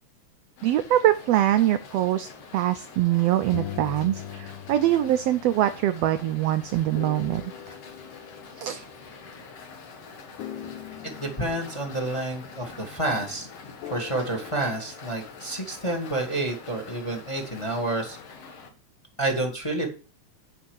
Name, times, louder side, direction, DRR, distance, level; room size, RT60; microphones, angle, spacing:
sound 1, 0.6-18.7, left 4 dB, 55° left, 2.4 m, -46 dB
voice 1, 0.6-7.4 8.6-8.8, right 13 dB, 85° right, 10 dB, 1.4 m, -23 dB
sound 2, 3.1-9.7 10.4-13.1 13.8-15.4, left 10 dB, 85° left, 2.2 m, -42 dB
voice 2, 11.2-13.5 13.9-18.2 19.2-19.9, right 2 dB, 15° left, 3 dB, 1.3 m, -29 dB
8.3 x 5.5 x 7.9 m, 0.37 s
omnidirectional pair, 3.5 m